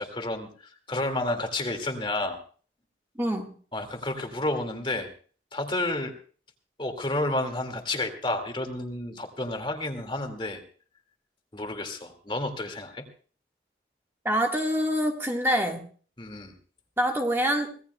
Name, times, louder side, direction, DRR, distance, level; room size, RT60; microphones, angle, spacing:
voice 1, 0.0-2.4 3.7-5.1 5.5-6.1 6.8-10.6 11.5-13.0 16.2-16.5, left 2 dB, 25° left, 6 dB, 2.1 m, -31 dB
voice 2, 3.2-3.5 14.2-15.8 17.0-17.7, equal, 15° right, 2 dB, 1.6 m, -25 dB
24.5 x 17.5 x 2.3 m, 0.42 s
head